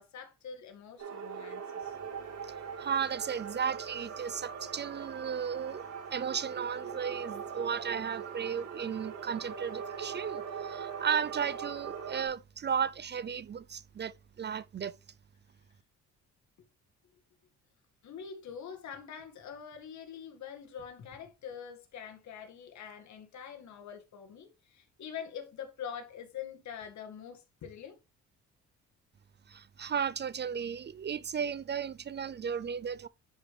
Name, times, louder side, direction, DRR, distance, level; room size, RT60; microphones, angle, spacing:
voice 1, 0.0-2.0 18.0-28.0, left 7 dB, 65° left, 2.0 m, -45 dB
sound 1, 1.0-12.3, right 7 dB, 60° right, 4.1 m, -41 dB
voice 2, 2.8-5.8 6.1-15.0 29.5-33.1, right 7 dB, 35° right, 0.5 m, -34 dB
11.0 x 4.9 x 3.3 m
cardioid pair, 90°, 30 cm